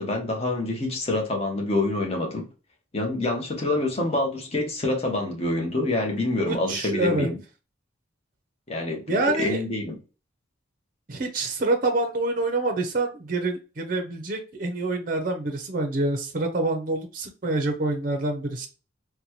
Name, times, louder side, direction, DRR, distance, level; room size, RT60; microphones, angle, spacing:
voice 1, 0.0-2.5 2.9-7.4 8.7-10.0, left 2 dB, 30° left, 0.9 m, -26 dB
voice 2, 6.4-7.3 9.1-9.6 11.1-18.7, right 2 dB, 45° right, 0.6 m, -26 dB
4.0 x 2.2 x 2.9 m
head